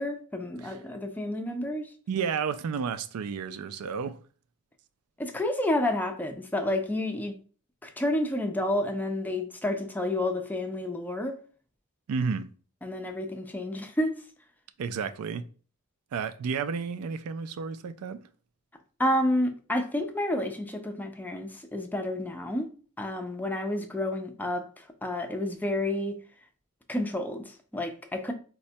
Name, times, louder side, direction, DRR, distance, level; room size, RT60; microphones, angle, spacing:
voice 1, 0.0-1.9 5.2-7.3 7.8-11.4 12.8-14.1 19.0-22.7 23.0-26.1 26.9-28.3, left 1 dB, 10° left, 0.4 m, -30 dB
voice 2, 2.1-4.2 12.1-12.5 14.8-15.4 16.1-18.3, right 6 dB, 75° right, 0.3 m, -31 dB
4.1 x 2.2 x 2.7 m
head